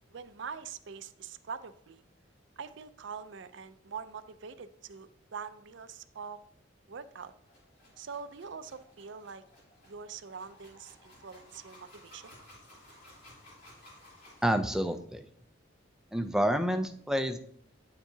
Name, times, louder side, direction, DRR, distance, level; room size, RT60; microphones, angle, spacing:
voice 1, 0.1-2.0 2.6-6.4 6.9-7.3 8.0-9.4 9.8-12.4, right 6 dB, 60° right, 12 dB, 0.5 m, -44 dB
sound 1, 7.1-14.9, left 1 dB, 50° left, 3.4 m, -57 dB
voice 2, 14.4-15.2 16.1-17.4, equal, 5° right, 7 dB, 0.4 m, -28 dB
9.4 x 7.1 x 2.8 m, 0.66 s
head